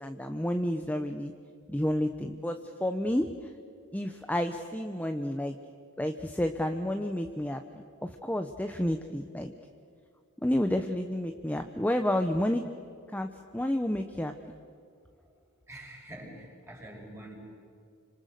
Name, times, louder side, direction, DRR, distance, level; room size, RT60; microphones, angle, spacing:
voice 1, 0.0-1.3 1.7-3.3 3.9-5.6 6.0-9.5 10.4-12.6 13.1-14.3, left 1 dB, 5° left, 6 dB, 0.9 m, -30 dB
voice 2, 15.7-17.3, right 1 dB, 15° right, -1 dB, 5.7 m, -45 dB
30.0 x 26.0 x 6.8 m, 2.3 s
head